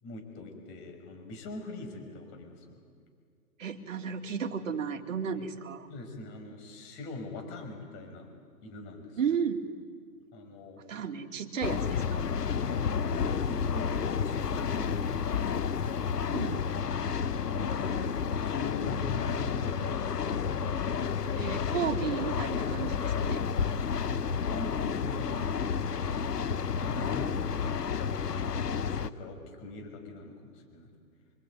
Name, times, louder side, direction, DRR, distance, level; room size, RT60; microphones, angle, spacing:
voice 1, 0.0-2.8 5.9-8.3 8.6-9.4 10.3-11.4 13.3-15.6 16.8-20.4 24.0-25.6 26.0-27.4 27.8-31.0, left 3 dB, 25° left, 4 dB, 5.8 m, -43 dB
voice 2, 3.6-5.9 9.2-9.6 10.9-12.2 16.3-16.6 21.4-23.4, right 7 dB, 55° right, 5 dB, 2.7 m, -33 dB
sound 1, 11.6-29.1, left 6 dB, 90° left, 1.2 m, -31 dB
26.0 x 23.5 x 9.3 m, 2.3 s
hypercardioid pair, 145°, 46 cm